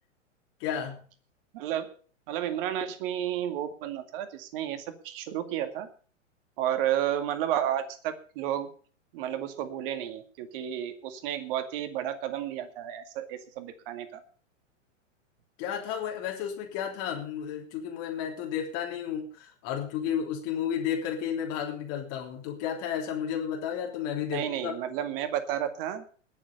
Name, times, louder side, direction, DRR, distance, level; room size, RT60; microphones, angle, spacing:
voice 1, 0.6-1.0 15.6-24.7, left 9 dB, 40° left, 1 dB, 3.4 m, -32 dB
voice 2, 1.5-1.9 2.3-5.9 6.6-8.7 9.1-14.2 24.3-26.0, right 11 dB, 45° right, 9 dB, 2.2 m, -32 dB
20.0 x 7.3 x 5.5 m, 0.42 s
hypercardioid pair, 115°, 38 cm